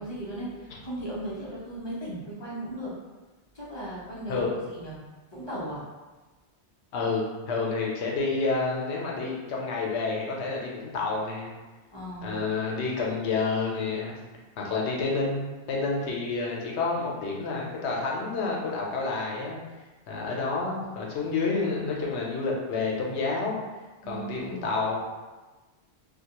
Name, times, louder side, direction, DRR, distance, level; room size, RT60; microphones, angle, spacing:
voice 1, 0.0-2.9 3.5-5.0 5.3-5.8 11.9-12.4 24.0-24.7, right 1 dB, 30° left, -9 dB, 0.5 m, -37 dB
voice 2, 6.9-11.5 12.2-14.2 14.6-19.6 20.1-23.6 24.1-25.0, left 4 dB, 80° left, -2 dB, 0.9 m, -29 dB
2.3 x 2.2 x 2.8 m, 1.2 s
omnidirectional pair, 1.1 m